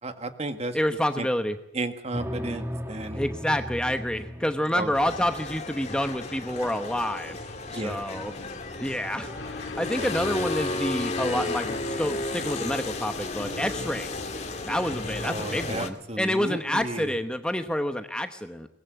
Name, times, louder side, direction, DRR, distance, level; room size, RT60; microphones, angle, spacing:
voice 1, 0.0-0.8 1.2-1.3 1.7-3.3 4.7-4.9 7.7-8.0 10.0-10.1 15.2-17.1, right 2 dB, 35° right, 7 dB, 1.9 m, -33 dB
voice 2, 0.7-1.6 3.1-7.4 7.7-8.3 8.8-9.3 9.8-14.1 14.6-18.7, left 1 dB, 5° left, 7 dB, 0.9 m, -28 dB
sound 1, 2.1-6.0 7.9-8.3 8.7-8.8 9.1-9.7, equal, 15° right, 2.0 m, -37 dB
sound 2, 4.9-15.9, left 2 dB, 40° left, 2.3 m, -33 dB
sound 3, 9.4-14.7, left 4 dB, 90° left, 2.2 m, -44 dB
22.5 x 20.5 x 8.2 m, 0.80 s
head